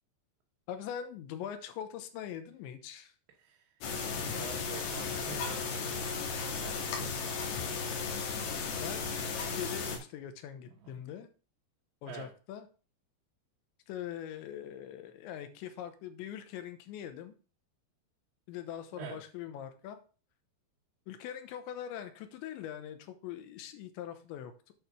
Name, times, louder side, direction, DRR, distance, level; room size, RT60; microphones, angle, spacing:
voice 1, 0.7-3.1 8.8-9.1 9.3-11.3 12.0-12.7 13.9-17.4 18.5-20.0 21.1-24.7, left 9 dB, 80° left, 8 dB, 3.3 m, -42 dB
voice 2, 3.4-3.7 4.3-7.3 10.7-11.0 12.1-12.3 19.0-19.2, right 5 dB, 75° right, 0 dB, 3.4 m, -46 dB
sound 1, 3.8-10.0, left 5 dB, 65° left, 3.7 m, -35 dB
8.9 x 4.9 x 6.2 m, 0.38 s
omnidirectional pair, 5.3 m